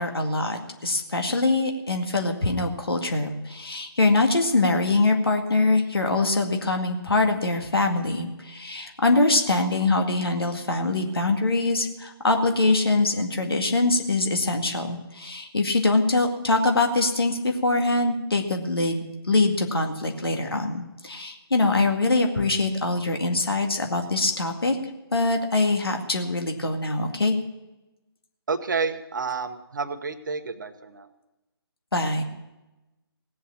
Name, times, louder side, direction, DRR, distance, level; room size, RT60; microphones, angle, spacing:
voice 1, 0.0-24.8 25.1-27.3 31.9-32.2, left 2 dB, 70° left, 3 dB, 2.1 m, -23 dB
voice 2, 28.5-31.1, right 4 dB, 50° right, 8 dB, 1.1 m, -30 dB
17.5 x 7.9 x 7.3 m, 1.0 s
figure-of-eight pair, 145°, 13 cm